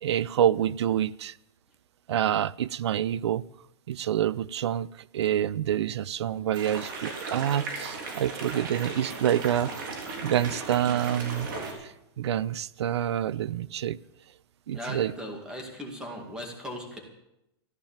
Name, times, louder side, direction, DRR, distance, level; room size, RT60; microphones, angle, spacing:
voice 1, 0.0-1.4 2.1-3.4 3.9-9.7 10.2-11.5 11.8-14.0 14.7-15.1, right 10 dB, 90° right, 0.6 m, -27 dB
sound 1, 6.5-11.7, right 3 dB, 50° right, 3.8 m, -36 dB
voice 2, 14.7-17.0, equal, 5° right, 2.2 m, -38 dB
15.0 x 10.5 x 7.3 m
supercardioid pair, 175°, 14 cm